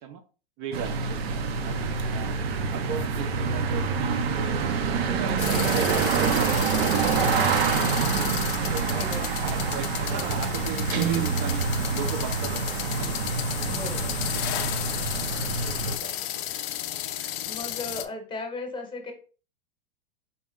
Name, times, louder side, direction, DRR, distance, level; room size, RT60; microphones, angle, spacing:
voice 1, 0.6-2.4 2.7-3.8 4.3-6.3 6.5-7.5 8.4-11.6 11.9-12.6 13.0-13.2 13.6-13.8 14.3-15.0 15.6-16.1, right 7 dB, 45° right, 7 dB, 0.5 m, -37 dB
sound 1, 0.7-16.0, right 5 dB, 85° right, 0.7 m, -27 dB
sound 2, 5.4-18.1, left 12 dB, 40° left, 0.4 m, -33 dB
voice 2, 8.9-9.8 10.1-10.4 13.6-14.2 17.5-19.1, left 3 dB, 15° left, 4 dB, 0.9 m, -37 dB
Guitar, 10.9-13.0, right 6 dB, 60° right, 0.9 m, -30 dB
4.4 x 2.0 x 3.6 m, 0.36 s
hypercardioid pair, 125°, 30 cm